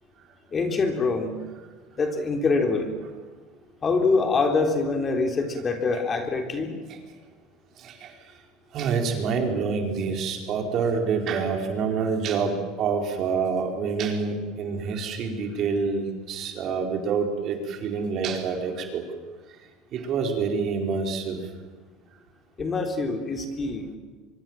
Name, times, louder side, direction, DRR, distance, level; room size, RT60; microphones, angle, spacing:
voice 1, 0.5-1.3 2.0-2.9 3.8-6.7 22.6-23.9, left 3 dB, 30° left, 4 dB, 3.6 m, -24 dB
voice 2, 8.7-19.0 19.9-21.4, right 5 dB, 50° right, 3 dB, 4.7 m, -27 dB
24.5 x 24.0 x 7.5 m, 1.4 s
supercardioid pair, 115°, 0 cm